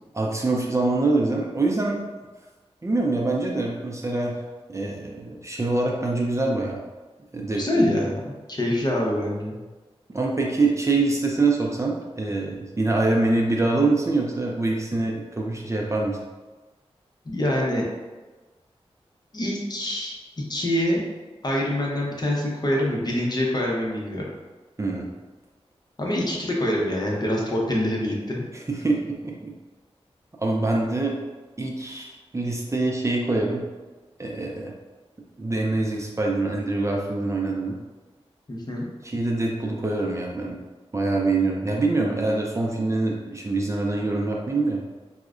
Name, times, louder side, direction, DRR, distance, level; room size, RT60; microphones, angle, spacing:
voice 1, 0.1-2.0 2.8-4.4 4.7-6.8 7.3-7.6 10.1-16.2 24.8-25.1 28.7-29.5 30.4-31.2 31.6-33.6 34.2-34.7 35.4-37.8 39.0-40.6 40.9-44.8, right 2 dB, 30° right, -1 dB, 0.4 m, -24 dB
voice 2, 7.5-8.2 8.5-9.6 17.2-17.8 19.3-21.0 21.4-24.2 26.0-28.4 38.5-38.9, left 1 dB, 40° left, -2 dB, 0.7 m, -25 dB
4.5 x 2.1 x 2.4 m, 1.3 s
wide cardioid pair, 75°, 11 cm